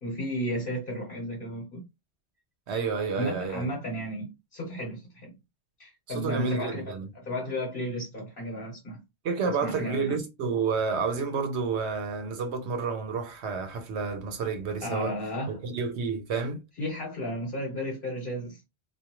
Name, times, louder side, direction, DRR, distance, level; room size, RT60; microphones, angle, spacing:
voice 1, 0.0-1.8 3.1-5.3 5.8-6.8 7.2-9.0 9.4-10.2 14.8-15.6 16.8-18.6, equal, 55° left, 1.1 m, -33 dB
voice 2, 2.7-3.7 6.1-7.1 9.2-15.1 15.5-16.6, right 5 dB, 85° right, 1.0 m, -30 dB
2.4 x 2.4 x 2.9 m
omnidirectional pair, 1.1 m